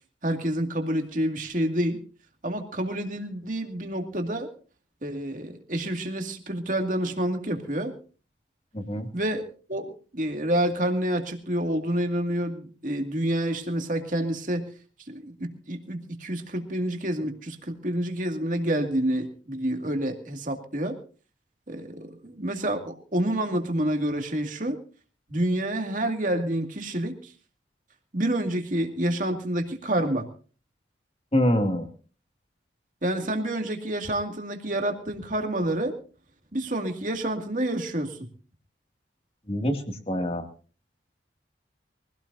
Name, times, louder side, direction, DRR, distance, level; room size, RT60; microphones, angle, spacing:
voice 1, 0.2-2.0 2.4-4.5 5.0-7.9 9.1-9.4 9.7-14.7 15.1-21.0 21.7-24.8 25.3-27.3 28.1-30.3 33.0-36.0 36.5-38.3, right 1 dB, 45° right, 4 dB, 2.3 m, -28 dB
voice 2, 8.7-9.1 31.3-31.9 39.5-40.4, equal, 30° left, 5 dB, 2.3 m, -25 dB
23.5 x 17.0 x 2.7 m, 0.38 s
head